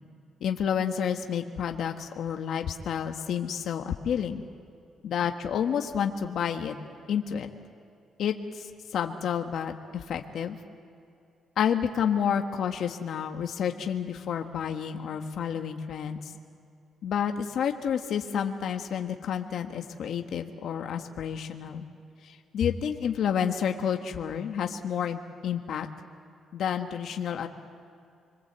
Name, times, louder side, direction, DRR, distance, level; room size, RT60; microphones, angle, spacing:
voice 1, 0.4-4.4 5.0-6.7 7.1-7.5 8.2-8.7 8.9-10.6 11.6-16.3 17.0-21.8 22.2-25.9 26.5-27.5, left 8 dB, 70° left, 4 dB, 1.4 m, -30 dB
26.5 x 23.5 x 8.0 m, 2.5 s
cardioid pair, 120°, 0 cm